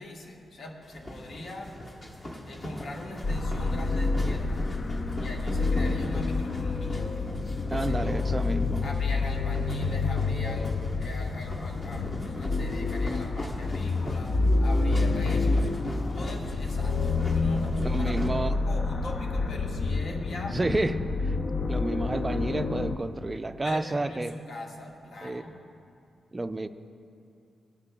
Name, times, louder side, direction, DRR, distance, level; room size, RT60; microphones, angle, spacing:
voice 1, 0.0-1.7 2.4-4.7 5.2-7.2 7.7-8.3 8.8-15.7 16.1-20.6 23.6-25.6, left 1 dB, 65° left, 0 dB, 1.2 m, -41 dB
sound 1, 0.8-18.3, left 1 dB, 30° left, 1.1 m, -40 dB
sound 2, 3.2-23.0, left 3 dB, 45° left, 0.4 m, -28 dB
voice 2, 7.7-8.9 17.8-18.6 20.5-21.0 21.2-21.4 21.7-24.4 25.2-25.4 26.3-26.7, right 2 dB, 20° right, 11 dB, 0.3 m, -30 dB
17.5 x 9.7 x 2.2 m, 2.5 s
wide cardioid pair, 145°, 0 cm